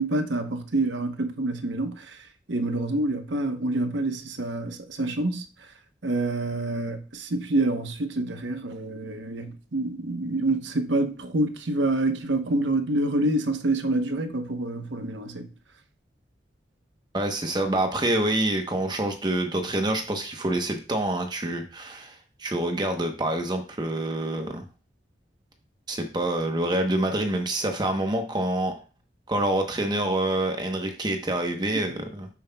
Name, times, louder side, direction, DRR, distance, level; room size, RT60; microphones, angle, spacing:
voice 1, 0.0-2.0 2.5-5.5 6.0-15.5, right 2 dB, 80° right, 1.0 m, -27 dB
voice 2, 17.1-24.6 25.9-28.7 29.3-32.3, right 1 dB, 25° right, 0.9 m, -27 dB
9.6 x 7.1 x 2.3 m
head